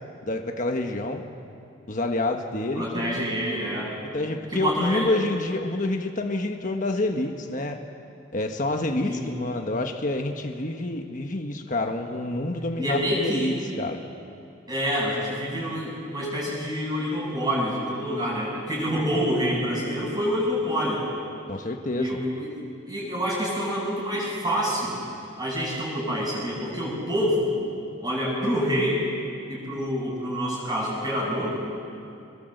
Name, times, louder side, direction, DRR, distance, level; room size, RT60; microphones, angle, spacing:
voice 1, 0.3-1.3 1.9-3.2 4.1-7.8 8.3-14.0 21.5-22.2, left 2 dB, 40° left, 4 dB, 1.3 m, -28 dB
voice 2, 2.7-3.9 4.5-5.2 9.0-9.3 12.8-13.6 14.7-21.0 21.9-22.5 22.9-25.0 25.4-27.5 28.0-29.0 29.5-31.6, equal, 20° right, -5 dB, 7.7 m, -27 dB
25.5 x 22.0 x 7.9 m, 2.5 s
head